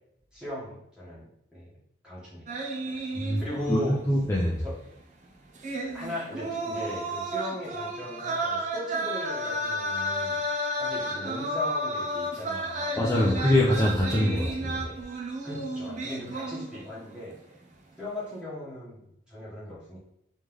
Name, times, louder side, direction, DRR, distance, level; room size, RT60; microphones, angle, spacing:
voice 1, 0.3-1.8 2.0-3.0 3.4-4.0 4.6-4.8 5.9-10.4 10.8-13.0 13.4-13.5 13.7-13.8 14.1-15.0 15.4-17.4 18.0-20.0, left 1 dB, 5° right, -8 dB, 1.3 m, -38 dB
sound 1, 2.5-3.8 4.1-4.2 5.5-17.0 17.3-17.6, right 1 dB, 40° right, 0.6 m, -32 dB
voice 2, 3.2-4.6 13.0-14.4, left 1 dB, 15° left, -5 dB, 0.5 m, -24 dB
3.3 x 3.2 x 3.5 m, 0.76 s
head